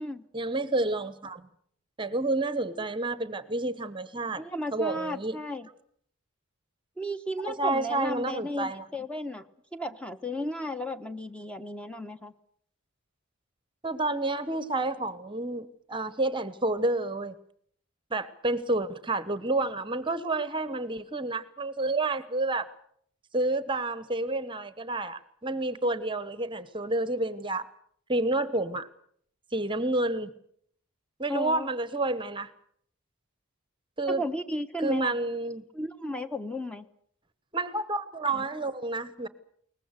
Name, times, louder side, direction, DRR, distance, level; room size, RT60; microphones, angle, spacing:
voice 1, 0.3-1.5 2.0-4.4 4.7-5.4 7.4-8.8 13.8-17.3 18.1-22.7 23.3-27.7 28.1-28.9 29.5-30.3 31.2-32.5 34.0-34.2 34.8-35.7 37.5-39.3, right 2 dB, 25° right, 15 dB, 1.0 m, -29 dB
voice 2, 4.3-5.7 7.0-9.4 9.7-12.3 31.3-31.7 34.1-35.1 35.7-36.9, left 1 dB, 5° left, 8 dB, 1.0 m, -34 dB
22.0 x 19.5 x 8.0 m, 0.65 s
head